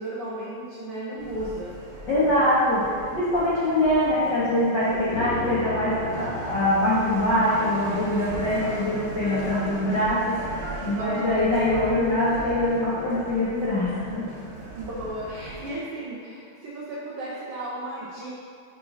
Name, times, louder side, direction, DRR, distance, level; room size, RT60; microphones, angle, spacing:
voice 1, 0.0-1.8 2.2-2.3 11.0-11.4 14.7-18.3, right 1 dB, 90° right, -6 dB, 1.2 m, -34 dB
sound 1, 1.2-15.7, right 2 dB, 45° right, 2.0 m, -38 dB
voice 2, 2.1-14.3, left 1 dB, 80° left, -10 dB, 0.9 m, -23 dB
sound 2, 5.1-14.5 14.8-14.9, left 2 dB, 55° left, 2.9 m, -39 dB
5.5 x 4.8 x 5.4 m, 2.3 s
omnidirectional pair, 3.9 m